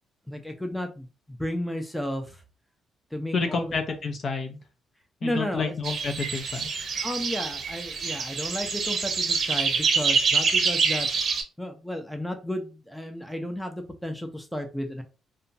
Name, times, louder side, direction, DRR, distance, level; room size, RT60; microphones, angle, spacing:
voice 1, 0.3-2.4 3.1-3.7 5.2-5.8 7.0-11.1 11.6-15.0, equal, 5° left, 4 dB, 0.5 m, -33 dB
voice 2, 3.3-4.6 5.2-6.7, left 4 dB, 50° left, 5 dB, 0.6 m, -29 dB
sound 1, 5.8-11.4, right 5 dB, 55° right, 0.6 m, -26 dB
2.8 x 2.2 x 2.6 m, 0.31 s
cardioid pair, 90°, 0 cm